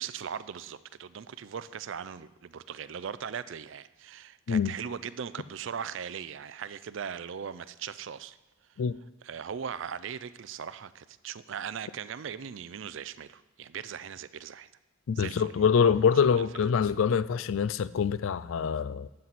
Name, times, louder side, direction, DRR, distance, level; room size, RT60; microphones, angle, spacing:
voice 1, 0.0-8.4 9.2-14.7 15.2-15.5 16.4-17.0, right 7 dB, 65° right, 0.4 m, -39 dB
voice 2, 15.1-19.1, left 6 dB, 70° left, 0.4 m, -25 dB
12.0 x 7.6 x 4.1 m
head